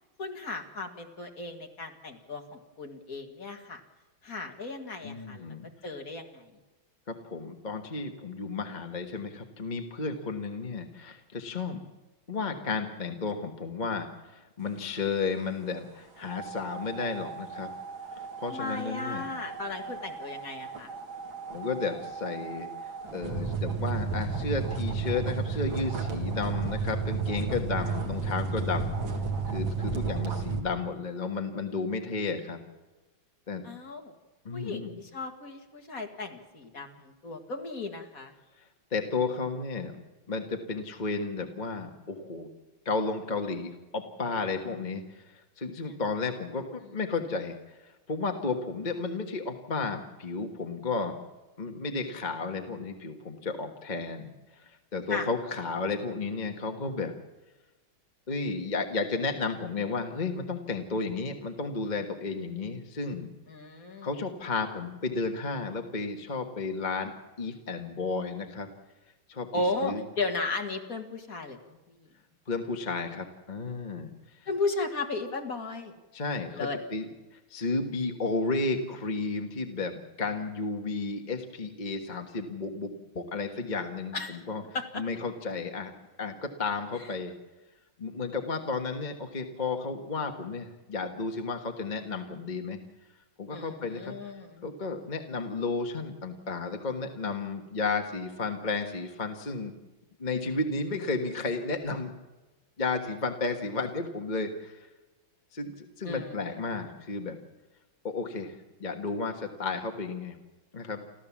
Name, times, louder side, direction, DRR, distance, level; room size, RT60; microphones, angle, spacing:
voice 1, 0.2-3.8 4.2-5.5 5.8-6.5 18.5-20.9 29.9-30.0 33.6-34.1 34.5-38.3 55.1-55.3 63.5-64.1 69.5-71.8 74.5-75.9 76.5-76.8 84.1-84.4 84.7-84.8 87.0-87.1 93.5-94.7 106.0-106.8, left 3 dB, 45° left, 4 dB, 2.3 m, -35 dB
voice 2, 5.0-5.7 7.1-11.8 12.3-17.7 18.4-19.3 21.5-22.7 23.1-29.0 29.5-32.6 33.5-33.6 34.4-34.9 38.9-39.9 40.3-42.5 42.8-47.6 47.8-51.2 51.6-54.3 54.6-57.1 58.3-63.3 64.0-68.7 69.3-69.5 69.8-70.0 72.5-74.1 76.1-77.1 77.5-84.6 84.9-85.9 86.2-87.3 88.0-92.8 93.4-94.2 94.6-99.7 100.2-102.1 102.8-104.9 105.5-107.4 108.0-110.4 110.7-111.0, left 3 dB, 25° left, 4 dB, 1.4 m, -33 dB
sound 1, 16.2-30.6, right 4 dB, 70° right, 2.7 m, -33 dB
29.5 x 13.0 x 7.3 m, 1.1 s
omnidirectional pair, 2.2 m